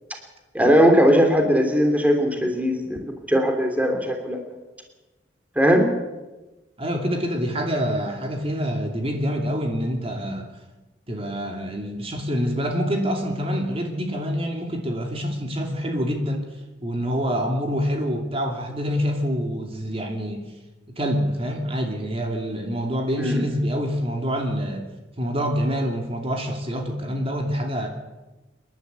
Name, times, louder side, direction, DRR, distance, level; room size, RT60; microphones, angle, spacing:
voice 1, 0.5-3.0 3.3-4.4 5.6-5.9 23.2-23.4, equal, 10° right, 3 dB, 2.9 m, -19 dB
voice 2, 6.8-10.5 11.1-16.5 16.8-20.4 20.9-24.9 25.2-27.9, equal, 30° right, 2 dB, 2.7 m, -26 dB
27.5 x 11.5 x 8.1 m, 1.1 s
head